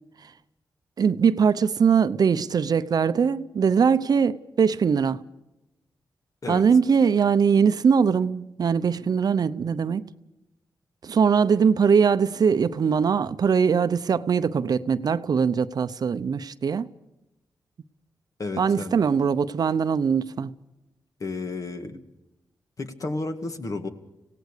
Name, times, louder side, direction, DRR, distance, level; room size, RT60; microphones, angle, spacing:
voice 1, 1.0-5.2 6.5-10.1 11.0-16.9 18.6-20.5, right 6 dB, 60° right, 0.7 m, -21 dB
voice 2, 18.4-19.0 21.2-22.0 22.8-23.9, left 3 dB, 50° left, 2.1 m, -32 dB
26.0 x 17.5 x 6.7 m
cardioid pair, 85°, 7 cm